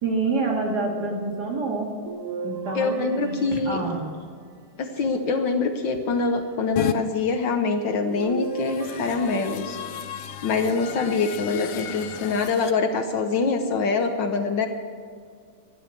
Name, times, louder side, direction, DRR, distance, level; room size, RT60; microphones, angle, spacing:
voice 1, 0.0-1.9 2.4-3.4 3.7-4.1, right 3 dB, 50° right, 0 dB, 2.6 m, -27 dB
sound 1, 2.1-4.3 5.1-6.1 8.1-10.1 11.1-11.9 12.6-12.7 14.1-14.2, right 4 dB, 85° right, 1.8 m, -37 dB
voice 2, 2.7-3.8 4.8-9.8 10.4-14.7, left 4 dB, 60° left, 6 dB, 1.5 m, -24 dB
sound 2, 6.8-7.0 8.3-12.7, left 10 dB, 80° left, 1.6 m, -33 dB
11.5 x 11.5 x 8.4 m, 2.1 s
omnidirectional pair, 2.4 m